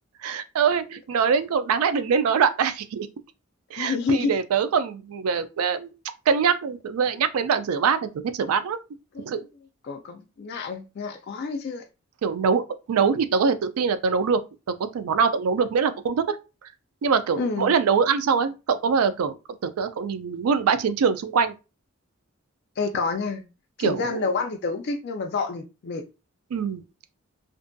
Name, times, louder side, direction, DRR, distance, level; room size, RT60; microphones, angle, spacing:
voice 1, 0.2-3.1 3.7-5.9 6.3-8.1 8.3-8.8 9.2-9.4 12.2-12.6 12.9-14.4 14.7-16.4 17.0-19.4 19.6-21.5 23.8-24.2 26.5-26.8, right 6 dB, 90° right, 0.3 m, -23 dB
voice 2, 3.7-4.3 9.1-9.3 9.8-11.8 17.4-17.7 22.8-23.4 23.8-26.0, left 4 dB, 50° left, 0.3 m, -28 dB
2.5 x 2.2 x 2.5 m
head